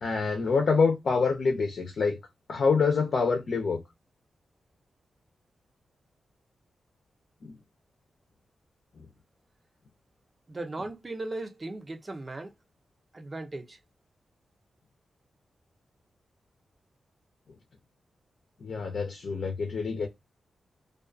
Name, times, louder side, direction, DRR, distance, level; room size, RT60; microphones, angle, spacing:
voice 1, 0.0-2.2 2.5-3.8 7.4-7.6 9.0-9.1 18.6-20.1, left 4 dB, 65° left, 0.7 m, -26 dB
voice 2, 10.5-12.5 13.1-13.8, right 2 dB, 35° right, 0.7 m, -37 dB
2.4 x 2.4 x 2.4 m
cardioid pair, 65°, 0 cm